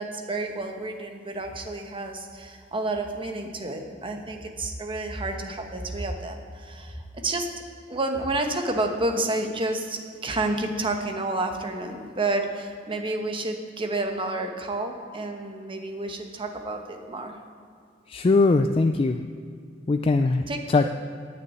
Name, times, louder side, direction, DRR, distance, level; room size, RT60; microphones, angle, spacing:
voice 1, 0.0-7.5 7.9-17.4 20.5-20.9, right 2 dB, 30° right, 4 dB, 1.1 m, -30 dB
voice 2, 18.1-19.2 19.9-20.8, left 3 dB, 30° left, 6 dB, 0.3 m, -21 dB
9.3 x 6.4 x 8.7 m, 2.3 s
head